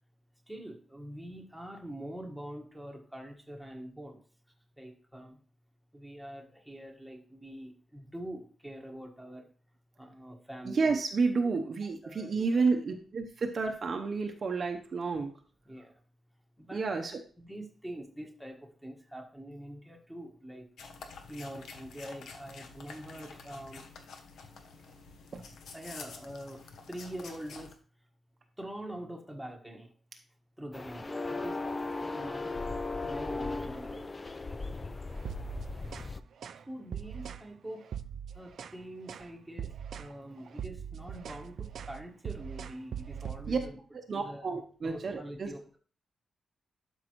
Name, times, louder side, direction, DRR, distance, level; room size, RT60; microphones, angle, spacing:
voice 1, 0.5-4.2 4.8-5.4 5.9-9.5 10.0-11.0 11.4-12.6 15.6-16.0 16.6-16.9 17.4-20.7 21.3-23.9 25.7-27.7 28.6-29.9 30.6-31.6 32.0-32.7 33.0-34.2 36.5-37.9 38.3-39.7 40.0-43.8 44.2-44.4 44.8-45.8, right 1 dB, ahead, 1 dB, 1.4 m, -44 dB
voice 2, 10.7-15.3 16.7-17.1 25.3-25.4 43.5-43.6 43.9-45.5, right 4 dB, 40° right, 4 dB, 0.8 m, -30 dB
sound 1, 20.8-27.7, left 4 dB, 80° left, 1.0 m, -49 dB
sound 2, 30.7-36.2, left 3 dB, 20° left, 0.4 m, -37 dB
sound 3, 35.2-36.1 36.4-36.6 36.9-37.5 37.8-38.8 39.1-39.3 39.6-40.1 40.4-43.7, right 8 dB, 65° right, 0.4 m, -41 dB
12.0 x 5.4 x 3.1 m, 0.42 s
wide cardioid pair, 160°, 0 cm